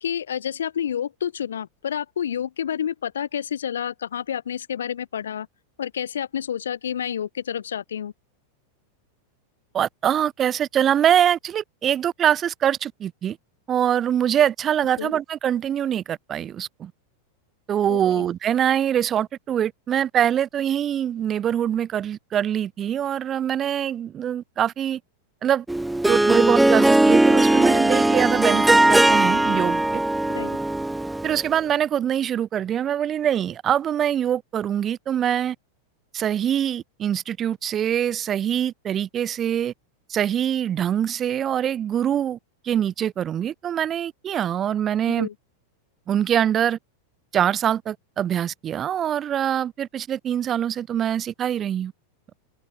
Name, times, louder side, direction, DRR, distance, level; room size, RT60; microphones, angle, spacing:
voice 1, 0.0-5.5 5.8-8.1 15.0-15.1 17.9-18.3 30.3-30.6 45.1-45.3, left 9 dB, 65° left, 0.4 m, -29 dB
voice 2, 9.7-13.4 13.7-16.9 17.7-25.0 25.4-25.6 26.1-30.0 31.2-35.6 36.1-39.7 40.1-42.4 42.6-45.3 46.1-46.8 47.3-51.9, right 10 dB, 25° right, 1.0 m, -24 dB
Harp, 25.7-31.5, right 2 dB, 5° right, 0.4 m, -19 dB
open air
figure-of-eight pair, 90°, 0 cm